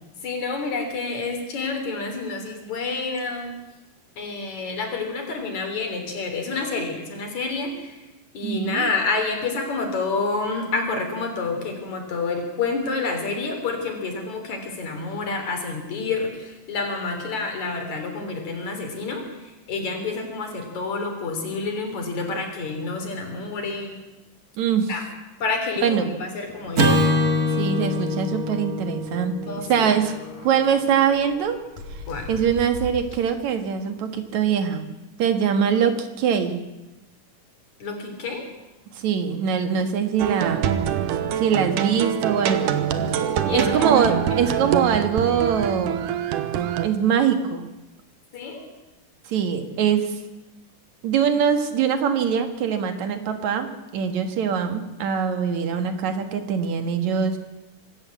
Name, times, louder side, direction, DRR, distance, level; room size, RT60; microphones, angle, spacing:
voice 1, 0.2-3.5 4.2-8.1 8.3-24.0 24.9-25.0 25.4-27.0 29.4-29.9 32.1-32.3 37.8-38.5 43.4-43.9 44.3-44.6 48.3-48.7, left 3 dB, 65° left, 4 dB, 4.7 m, -28 dB
voice 2, 8.4-8.9 24.6-24.9 25.8-26.1 27.6-29.3 29.7-30.1 30.4-31.6 32.3-34.8 35.2-36.6 39.0-40.7 41.4-42.8 43.1-46.1 46.8-47.7 49.3-50.1 51.0-57.4, right 7 dB, 65° right, 7 dB, 2.9 m, -23 dB
sound 1, 26.5-27.5 27.8-27.9 28.2-28.4 29.6-30.7 31.2-33.4, left 2 dB, 85° left, 4.4 m, -39 dB
Acoustic guitar / Strum, 26.7-31.2, left 1 dB, 35° right, 2.0 m, -24 dB
sound 2, 40.2-46.9, right 9 dB, 90° right, 2.7 m, -24 dB
24.0 x 13.5 x 8.5 m, 1.0 s
omnidirectional pair, 3.6 m